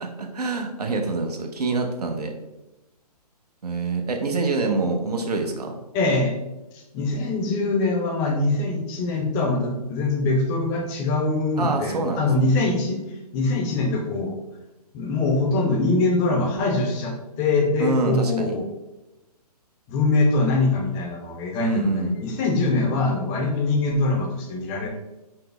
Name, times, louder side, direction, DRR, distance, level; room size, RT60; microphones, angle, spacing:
voice 1, 0.0-2.3 3.6-5.8 11.6-12.5 17.8-18.5 21.6-22.1, right 3 dB, 70° right, 4 dB, 0.8 m, -26 dB
voice 2, 5.9-6.3 6.7-13.0 13.3-14.3 14.9-18.7 19.9-24.9, left 2 dB, 20° left, 1 dB, 0.5 m, -23 dB
5.6 x 2.1 x 3.3 m, 0.99 s
figure-of-eight pair, 135°, 21 cm